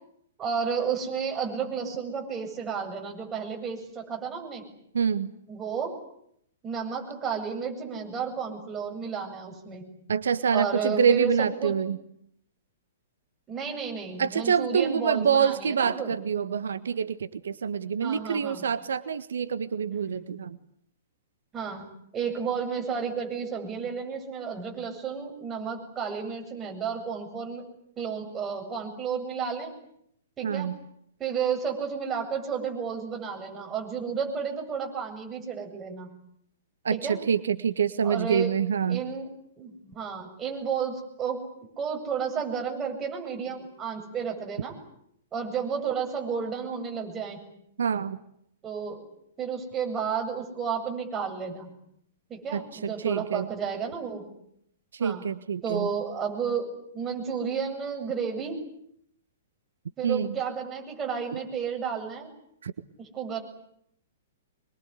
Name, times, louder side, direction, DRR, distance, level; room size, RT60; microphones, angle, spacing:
voice 1, 0.4-4.6 5.5-5.9 6.6-9.9 10.5-11.7 13.5-16.1 18.0-18.6 20.1-20.2 21.5-21.8 22.1-27.6 28.0-29.7 30.4-30.7 31.2-36.1 36.9-37.2 38.0-38.5 38.9-39.3 39.6-41.4 41.8-44.7 45.3-47.4 48.6-49.0 49.4-51.7 52.3-54.2 55.0-55.2 55.6-56.7 56.9-58.6 60.0-62.3 63.0-63.4, right 6 dB, 20° right, 2 dB, 7.9 m, -32 dB
voice 2, 4.9-5.3 10.1-12.0 14.2-20.6 30.4-30.8 36.8-39.0 47.8-48.2 52.5-52.6 53.0-53.5 54.9-55.9 60.0-60.4 62.6-62.7, right 7 dB, 70° right, 13 dB, 1.6 m, -26 dB
26.0 x 22.5 x 9.9 m, 0.73 s
figure-of-eight pair, 115°, 0 cm